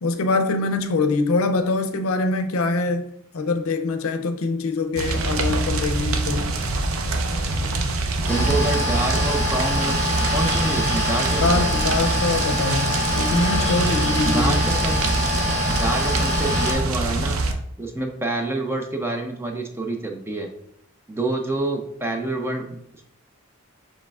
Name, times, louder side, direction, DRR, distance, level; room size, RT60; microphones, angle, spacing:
voice 1, 0.0-3.1 3.3-6.5 11.4-14.6, left 3 dB, 85° left, 0.5 m, -23 dB
sound 1, 5.0-17.5, right 2 dB, 80° right, 0.6 m, -24 dB
sound 2, 8.3-16.7, left 1 dB, 10° left, 1.7 m, -25 dB
voice 2, 8.3-10.0 10.3-11.7 14.2-15.0 15.7-17.4 17.8-20.5 21.1-22.8, right 2 dB, 10° right, 0.4 m, -27 dB
6.4 x 3.1 x 2.3 m
head